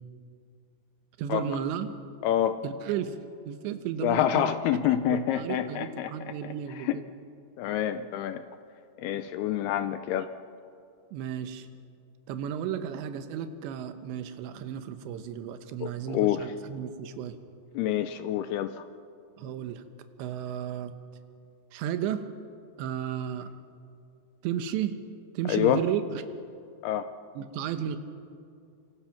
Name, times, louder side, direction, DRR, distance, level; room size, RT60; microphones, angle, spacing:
voice 1, 1.2-1.9 2.6-3.2 3.5-4.8 5.1-7.1 11.1-11.7 12.3-17.3 19.4-19.8 20.2-20.9 21.7-22.3 22.8-23.5 24.4-25.0 25.3-26.2 27.3-28.0, right 9 dB, 85° right, 9 dB, 3.4 m, -33 dB
voice 2, 2.2-2.6 4.0-6.1 6.9-7.0 7.6-8.4 9.0-10.3 15.8-16.4 17.8-18.7 25.5-25.8 26.8-27.1, left 11 dB, 80° left, 11 dB, 2.4 m, -27 dB
26.5 x 26.5 x 5.9 m, 2.5 s
omnidirectional pair, 5.0 m